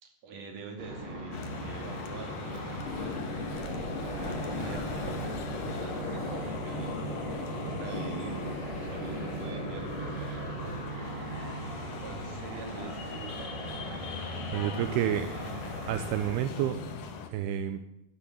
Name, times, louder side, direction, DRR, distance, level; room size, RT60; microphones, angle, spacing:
voice 1, 0.0-3.8 4.5-8.5 8.8-10.9 12.0-13.7, right 4 dB, 45° right, 3 dB, 3.5 m, -45 dB
sound 1, 0.8-16.3, right 1 dB, 30° right, 4.1 m, -38 dB
sound 2, 1.3-17.3, left 4 dB, 65° left, 3.1 m, -41 dB
sound 3, 2.8-9.5, left 6 dB, 85° left, 4.2 m, -41 dB
voice 2, 14.5-15.3 15.9-16.8 17.3-17.8, right 11 dB, 80° right, 10 dB, 2.8 m, -29 dB
13.5 x 11.5 x 7.5 m, 0.86 s
omnidirectional pair, 4.6 m